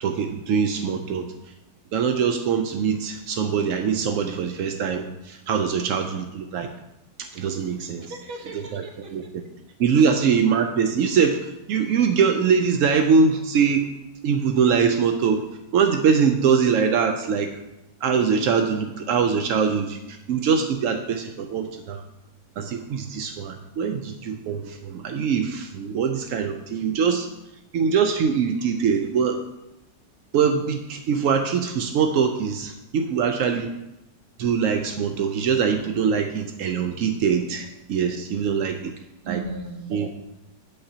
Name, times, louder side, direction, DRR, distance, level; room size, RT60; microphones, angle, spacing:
voice 1, 0.0-1.3 1.9-6.7 7.2-8.1 8.5-8.8 9.1-9.2 9.8-13.9 14.2-15.4 15.7-17.5 18.0-22.0 22.6-27.3 27.7-29.4 30.3-33.7 34.4-38.9 39.3-39.4 39.9-40.1, right 6 dB, 75° right, 5 dB, 0.7 m, -23 dB
voice 2, 8.0-9.1 10.0-10.1 39.2-40.1, right 3 dB, 40° right, 2 dB, 1.1 m, -36 dB
8.6 x 7.9 x 2.8 m, 0.91 s
omnidirectional pair, 1.9 m